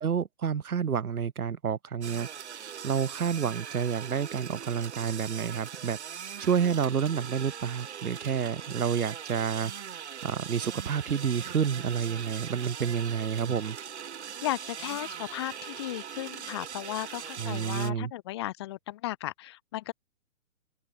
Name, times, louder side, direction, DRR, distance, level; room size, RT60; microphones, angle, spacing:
voice 1, 0.0-2.3 2.8-6.0 6.4-9.7 10.2-13.8 17.4-18.1, right 7 dB, 90° right, 2.2 m, -29 dB
sound 1, 2.0-17.9, right 8 dB, 50° right, 2.2 m, -41 dB
voice 2, 14.4-19.9, left 16 dB, 20° left, 1.6 m, -35 dB
open air
hypercardioid pair, 175°, 43 cm